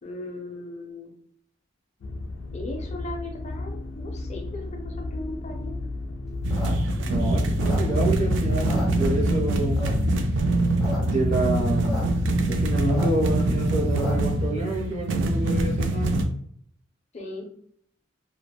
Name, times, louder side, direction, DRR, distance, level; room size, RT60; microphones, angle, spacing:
voice 1, 0.0-1.1 2.5-5.8 17.1-17.5, left 2 dB, 35° left, 0 dB, 0.5 m, -37 dB
sound 1, 2.0-14.3, left 2 dB, 85° left, 0.3 m, -33 dB
sound 2, 6.4-8.2 8.5-9.4 9.8-10.2 10.6-11.0 11.2-11.3 11.5-12.0 12.4-14.4, left 1 dB, ahead, 1.0 m, -36 dB
sound 3, 6.4-16.3, right 2 dB, 70° right, 0.4 m, -24 dB
voice 2, 7.0-9.9 11.0-12.1 12.4-16.1, right 1 dB, 40° right, -1 dB, 0.7 m, -28 dB
3.2 x 2.2 x 2.2 m, 0.65 s
head